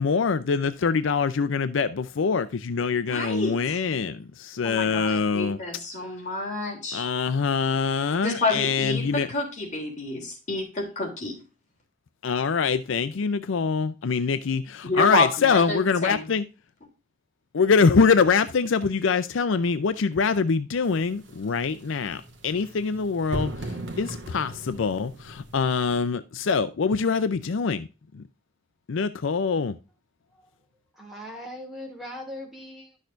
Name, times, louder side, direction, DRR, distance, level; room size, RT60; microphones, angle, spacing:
voice 1, 0.0-5.6 6.9-9.3 12.2-16.4 17.5-23.5 24.0-27.9 28.1-28.2 28.9-29.7, left 5 dB, 70° left, 0.5 m, -24 dB
voice 2, 3.1-3.8 4.6-7.0 8.2-11.3 14.8-16.3, left 2 dB, 35° left, 3.2 m, -29 dB
sound 1, 20.8-26.0, right 1 dB, 65° right, 1.7 m, -38 dB
voice 3, 30.9-33.0, left 1 dB, ahead, 2.6 m, -39 dB
11.5 x 6.4 x 2.5 m
head